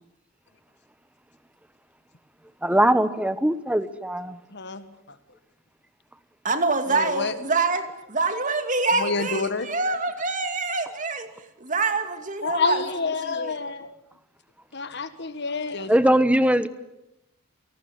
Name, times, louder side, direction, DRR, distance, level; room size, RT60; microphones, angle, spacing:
voice 1, 2.6-4.4 15.9-16.7, right 1 dB, 5° right, 13 dB, 1.0 m, -20 dB
voice 2, 4.5-4.8 6.9-7.3 9.0-9.7 12.4-13.9 14.7-15.9, left 4 dB, 50° left, 11 dB, 1.7 m, -28 dB
voice 3, 6.4-11.3 11.6-13.6, right 3 dB, 35° right, 7 dB, 2.5 m, -26 dB
28.0 x 19.0 x 9.7 m, 0.91 s
head